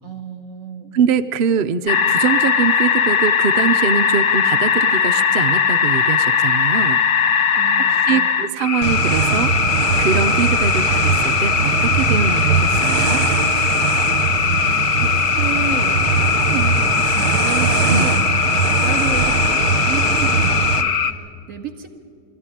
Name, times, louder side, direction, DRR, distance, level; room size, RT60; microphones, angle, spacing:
voice 1, 0.0-1.0 7.5-8.5 14.3-21.9, right 7 dB, 55° right, 5 dB, 2.2 m, -32 dB
voice 2, 0.9-7.0 8.1-9.5 10.0-13.2 17.9-18.2, right 6 dB, 85° right, 9 dB, 0.4 m, -22 dB
sound 1, 1.9-21.1, left 7 dB, 85° left, 0.4 m, -19 dB
sound 2, 8.8-20.8, right 6 dB, 70° right, 1.4 m, -21 dB
22.5 x 14.5 x 9.9 m, 2.1 s
omnidirectional pair, 1.8 m